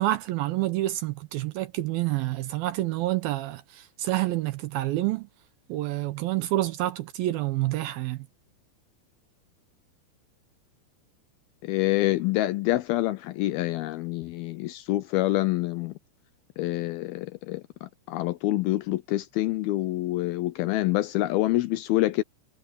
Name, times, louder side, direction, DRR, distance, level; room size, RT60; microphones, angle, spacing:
voice 1, 0.0-5.3 5.7-8.3, right 16 dB, 75° right, 2.3 m, -28 dB
voice 2, 11.6-15.9 16.6-22.2, left 17 dB, 80° left, 2.3 m, -26 dB
omnidirectional pair, 4.8 m